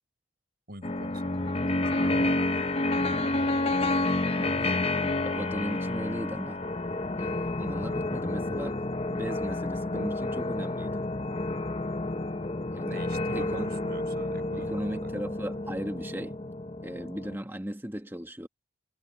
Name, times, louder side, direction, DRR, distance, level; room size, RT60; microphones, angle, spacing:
voice 1, 0.7-2.4 12.8-15.1, right 1 dB, 50° right, 6.3 m, -45 dB
sound 1, 0.8-17.4, left 2 dB, 30° left, 0.7 m, -30 dB
voice 2, 4.3-6.6 7.1-8.8 9.1-11.1 12.5-13.0 13.3-13.7 14.6-16.4 16.8-18.5, equal, 10° right, 1.3 m, -37 dB
head